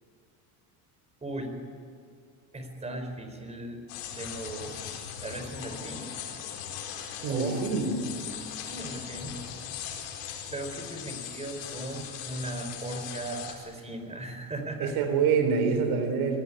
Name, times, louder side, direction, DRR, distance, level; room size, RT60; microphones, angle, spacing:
voice 1, 1.2-1.5 2.5-3.8 4.1-6.1 7.3-7.6 8.6-9.4 9.7-10.0 10.5-14.9, right 1 dB, 15° right, 6 dB, 4.5 m, -37 dB
sound 1, 3.9-13.5, left 9 dB, 85° left, 4.7 m, -39 dB
voice 2, 7.2-8.1 14.8-16.4, right 5 dB, 65° right, 6 dB, 3.8 m, -26 dB
24.5 x 18.5 x 9.9 m, 2.2 s
cardioid pair, 130°, 42 cm